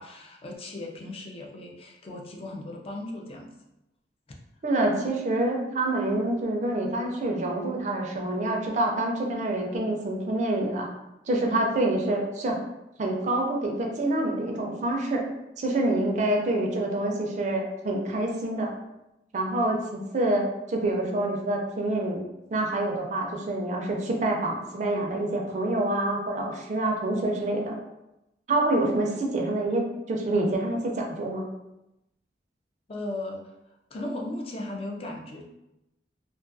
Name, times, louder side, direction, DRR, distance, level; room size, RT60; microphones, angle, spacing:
voice 1, 0.0-3.5 32.9-33.5 33.9-35.5, left 1 dB, 35° left, 0 dB, 0.4 m, -36 dB
voice 2, 4.6-10.9 11.3-12.6 13.0-15.3 15.6-18.7 19.3-22.2 22.5-27.8 28.5-31.5, right 1 dB, 40° right, 1 dB, 0.4 m, -27 dB
2.3 x 2.3 x 2.5 m, 0.92 s
head